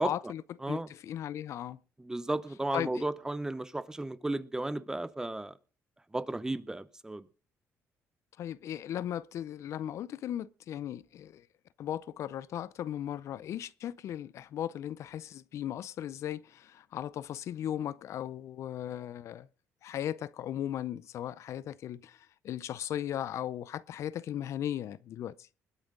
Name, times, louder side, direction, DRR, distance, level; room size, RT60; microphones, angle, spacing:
voice 1, 0.0-0.4 0.7-1.8 2.7-3.0 8.4-11.4 11.8-19.5 19.8-25.3, left 11 dB, 65° left, 0.5 m, -37 dB
voice 2, 2.0-5.6 6.1-7.2, right 2 dB, 10° right, 0.8 m, -34 dB
20.5 x 9.1 x 3.8 m
cardioid pair, 100°, 5 cm